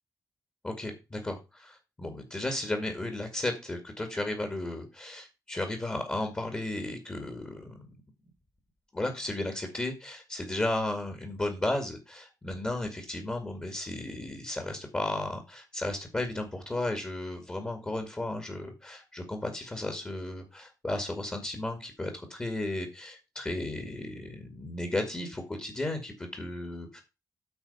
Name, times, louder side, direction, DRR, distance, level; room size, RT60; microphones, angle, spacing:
voice 1, 0.6-7.9 8.9-27.0, left 1 dB, 20° left, 4 dB, 2.2 m, -34 dB
9.0 x 4.3 x 7.1 m, 0.27 s
wide cardioid pair, 140°, 7 cm